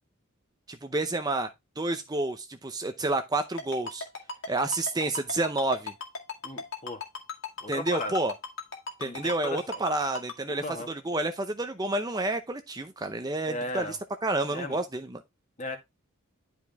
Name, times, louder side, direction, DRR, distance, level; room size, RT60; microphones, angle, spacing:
voice 1, 0.7-1.5 1.8-4.0 4.5-5.9 7.7-8.3 9.0-14.0 14.2-15.2, right 2 dB, 20° right, 0.6 m, -29 dB
Ringtone, 3.6-10.3, left 4 dB, 60° left, 2.1 m, -36 dB
voice 2, 6.4-7.0 7.6-8.1 9.0-9.8 10.5-10.9 13.4-14.0 14.5-14.8 15.6-15.8, left 2 dB, 35° left, 1.7 m, -36 dB
11.0 x 4.9 x 3.5 m
head